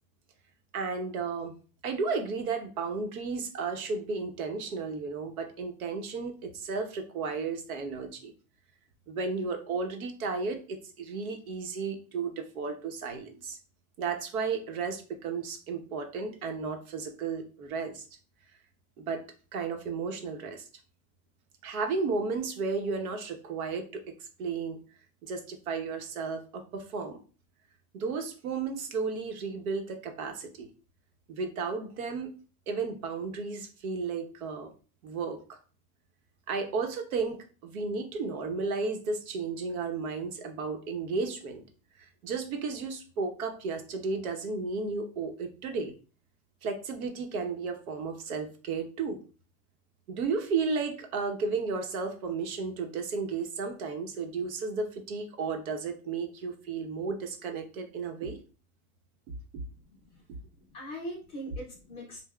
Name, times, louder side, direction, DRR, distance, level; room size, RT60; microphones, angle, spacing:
voice 1, 0.7-1.5 1.8-8.3 9.1-13.6 14.0-18.0 19.0-20.6 21.6-24.1 24.4-24.8 25.2-27.2 27.9-30.7 31.3-32.3 32.7-34.7 35.0-35.6 36.5-41.6 42.0-45.9 46.6-49.2 50.1-58.4, right 4 dB, 75° right, 5 dB, 1.0 m, -33 dB
voice 2, 59.6-60.2 60.7-62.2, equal, 15° left, -3 dB, 0.5 m, -41 dB
5.5 x 2.2 x 2.3 m, 0.37 s
supercardioid pair, 170°, 43 cm